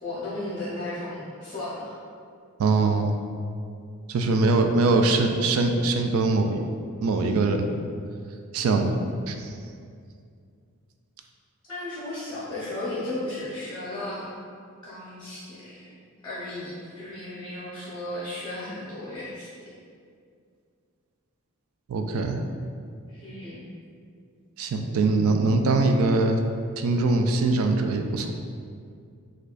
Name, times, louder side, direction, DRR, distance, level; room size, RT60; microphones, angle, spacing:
voice 1, 0.0-1.8 4.4-5.0 11.7-14.2 14.8-15.8 16.2-19.5 23.1-23.6, left 1 dB, 20° left, -10 dB, 0.7 m, -35 dB
voice 2, 2.6-3.2 4.1-6.6 7.0-7.7 8.5-9.0 9.3-9.5 21.9-22.4 24.6-26.4 26.8-28.3, right 3 dB, 65° right, 5 dB, 0.3 m, -22 dB
4.7 x 2.3 x 2.4 m, 2.3 s
head